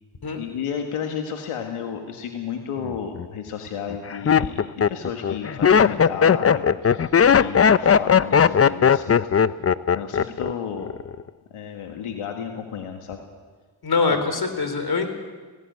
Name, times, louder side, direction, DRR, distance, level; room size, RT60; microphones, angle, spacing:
voice 1, 0.4-9.2 9.9-10.9 11.5-13.2 14.1-14.2, left 7 dB, 85° left, 4 dB, 1.8 m, -33 dB
Laughter, 2.8-3.3 3.9-10.5 10.8-11.3, left 7 dB, 30° left, 0.6 m, -17 dB
voice 2, 13.8-15.1, left 4 dB, 45° left, 8 dB, 3.9 m, -23 dB
17.5 x 17.0 x 9.3 m, 1.4 s
cardioid pair, 65°, 49 cm